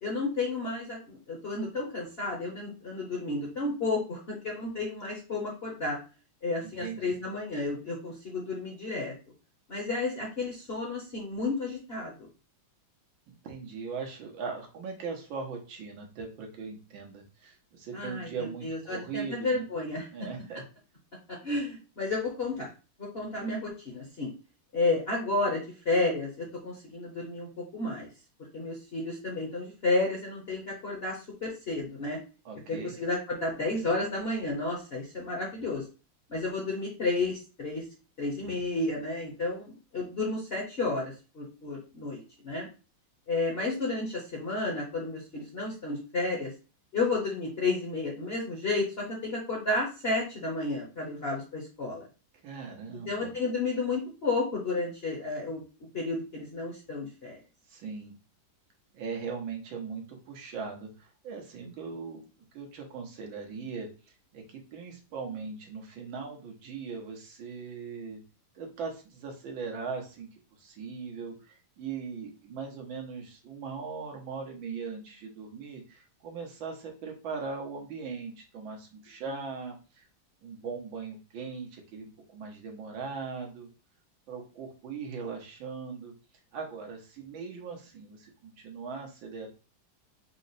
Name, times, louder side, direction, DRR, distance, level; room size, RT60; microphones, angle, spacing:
voice 1, 0.0-6.0 6.4-9.1 9.7-12.3 17.9-20.1 21.3-22.7 23.1-24.3 24.7-28.1 28.5-32.2 32.7-35.8 36.3-37.9 38.2-42.7 43.3-46.5 46.9-52.0 53.1-55.6 55.9-57.4, left 3 dB, 45° left, -2 dB, 0.8 m, -32 dB
voice 2, 6.6-7.1 13.3-19.6 20.1-20.6 32.5-32.9 52.4-53.3 57.7-58.2 58.9-62.3 62.5-63.9 64.3-68.2 68.6-70.3 70.6-80.1 80.4-83.7 84.3-86.1 86.5-89.5, right 5 dB, 85° right, 2 dB, 1.7 m, -39 dB
4.8 x 2.0 x 4.0 m, 0.33 s
omnidirectional pair, 2.1 m